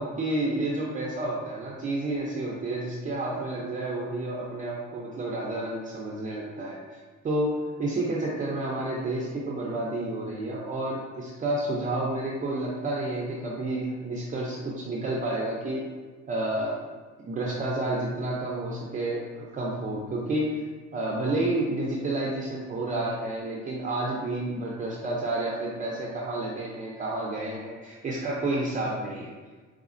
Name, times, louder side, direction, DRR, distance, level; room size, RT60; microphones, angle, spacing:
voice 1, 0.0-7.0 7.2-15.8 16.3-16.9 17.2-20.6 20.9-29.3, right 2 dB, 25° right, -3 dB, 0.4 m, -30 dB
4.0 x 3.5 x 2.4 m, 1.4 s
cardioid pair, 155°, 29 cm